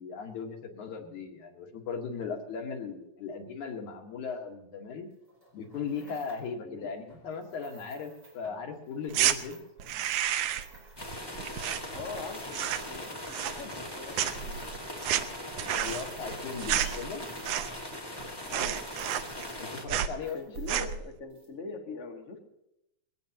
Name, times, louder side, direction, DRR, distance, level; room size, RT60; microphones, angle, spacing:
voice 1, 0.0-5.1 5.5-9.6 15.6-17.2 19.6-20.7, left 5 dB, 85° left, 2 dB, 3.0 m, -38 dB
sound 1, 5.1-6.5 7.0-13.4 13.9-14.9 15.4-18.2 18.6-19.7 20.0-20.9 21.3-21.5, right 1 dB, 15° right, 4.6 m, -56 dB
sound 2, 9.1-9.4 9.8-10.8 11.0-12.2 12.5-13.0 13.3-13.9 14.1-17.9 18.2-18.3 18.5-19.6 19.9-20.2 20.6-21.0, right 11 dB, 75° right, 1.6 m, -30 dB
sound 3, 11.0-19.8, left 1 dB, 10° left, 1.3 m, -40 dB
voice 2, 11.9-14.2 14.4-14.7 18.4-18.9 20.3-22.4, left 4 dB, 30° left, 1 dB, 1.7 m, -42 dB
20.5 x 16.5 x 2.9 m, 0.84 s
omnidirectional pair, 3.3 m